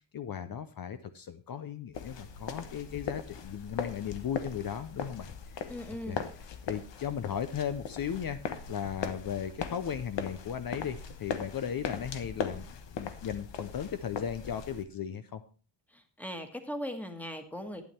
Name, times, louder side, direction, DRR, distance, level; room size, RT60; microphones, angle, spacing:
voice 1, 0.1-5.7 6.1-6.2 6.6-8.4 8.7-12.7 12.9-15.4, left 8 dB, 50° left, 10 dB, 0.7 m, -36 dB
sound 1, 1.9-14.8, left 6 dB, 75° left, 1.2 m, -39 dB
voice 2, 5.7-6.2 15.9-17.8, equal, 5° left, 6 dB, 1.5 m, -39 dB
11.5 x 9.2 x 4.4 m, 0.38 s
wide cardioid pair, 150°, 44 cm